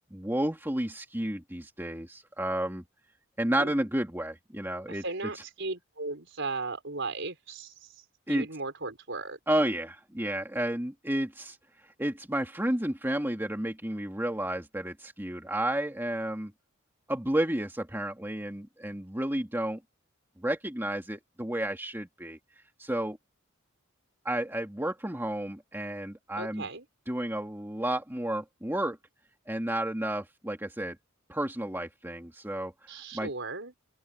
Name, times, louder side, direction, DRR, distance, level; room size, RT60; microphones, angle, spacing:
voice 1, 0.1-2.8 3.4-5.0 8.3-8.5 9.5-11.6 12.0-16.5 17.1-19.8 20.4-22.4 22.8-23.2 24.2-26.6 27.1-29.0 29.5-31.0 31.3-32.7 33.1-33.3, right 1 dB, 10° right, 2.2 m, -31 dB
voice 2, 4.9-8.0 8.3-9.4 26.3-26.8 32.9-33.7, right 3 dB, 60° right, 5.1 m, -36 dB
open air
head